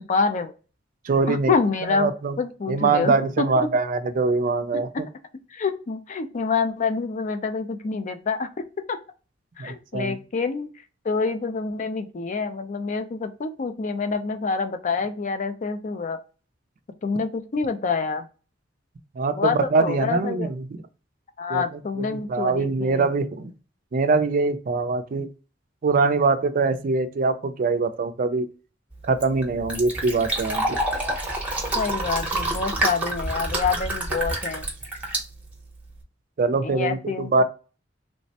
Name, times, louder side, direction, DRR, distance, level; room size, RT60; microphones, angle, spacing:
voice 1, 0.1-0.5 1.3-2.1 2.4-3.1 3.6-3.7 5.5-8.5 8.9-9.0 9.6-10.7 11.0-16.2 17.0-18.3 19.4-20.5 21.4-23.1 31.7-34.6 36.6-37.4, left 4 dB, 40° left, 0.4 m, -27 dB
voice 2, 1.0-1.5 1.9-2.4 2.7-4.9 9.6-10.2 19.2-20.7 21.5-21.6 22.0-23.5 23.9-25.3 25.8-28.5 29.0-30.8 36.4-37.4, right 3 dB, 45° right, 0.4 m, -23 dB
Fill (with liquid), 28.9-36.0, right 2 dB, 5° right, 0.8 m, -28 dB
3.2 x 2.1 x 2.7 m
head